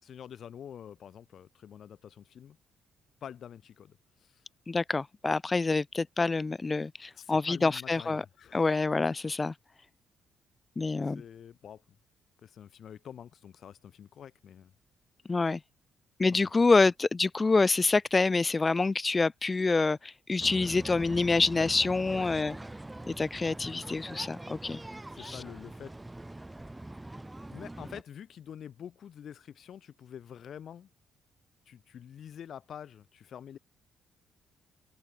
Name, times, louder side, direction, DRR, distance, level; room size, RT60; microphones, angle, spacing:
voice 1, 0.0-2.6 3.2-4.4 7.2-8.6 11.0-11.8 12.4-14.7 16.3-16.5 22.1-22.5 25.1-26.0 27.5-30.9 31.7-33.6, left 9 dB, 60° left, 3.3 m, -47 dB
voice 2, 4.7-8.2 8.5-9.5 10.8-11.2 15.3-15.6 16.2-22.5 23.1-24.8 25.2-25.4, left 3 dB, 25° left, 1.4 m, -27 dB
sound 1, 20.4-28.0, right 1 dB, 10° right, 1.1 m, -43 dB
open air
cardioid pair, 90°, 0 cm